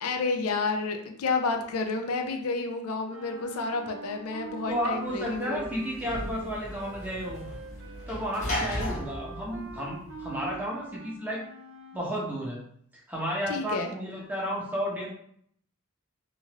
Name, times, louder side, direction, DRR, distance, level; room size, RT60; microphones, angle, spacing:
voice 1, 0.0-5.6 8.9-9.0 13.5-13.9, left 3 dB, 80° left, 5 dB, 0.4 m, -30 dB
sound 1, 3.1-12.3, right 4 dB, 65° right, 0.6 m, -44 dB
Sliding door / Slam, 4.7-10.6, left 1 dB, 35° left, 0.8 m, -37 dB
voice 2, 4.7-7.5 8.1-11.4 11.9-12.6 13.1-15.1, equal, 10° right, -4 dB, 0.7 m, -32 dB
2.9 x 2.4 x 2.9 m, 0.66 s
head